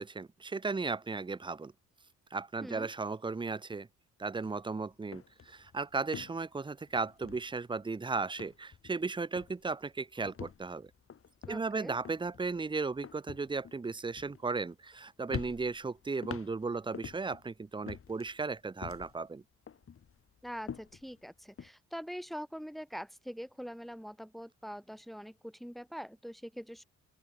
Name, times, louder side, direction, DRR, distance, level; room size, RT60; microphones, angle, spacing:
voice 1, 0.0-1.7 2.3-3.9 4.2-10.9 11.5-19.4, right 4 dB, 15° right, 0.8 m, -36 dB
voice 2, 2.6-2.9 11.5-11.9 20.4-26.8, equal, ahead, 2.4 m, -44 dB
sound 1, 4.4-4.6 4.9-7.9 8.2-9.1 9.4-9.7 10.2-15.0 15.3-17.4 17.9-19.3 19.7-21.7, left 7 dB, 45° left, 3.4 m, -46 dB
open air
cardioid pair, 90°, 30 cm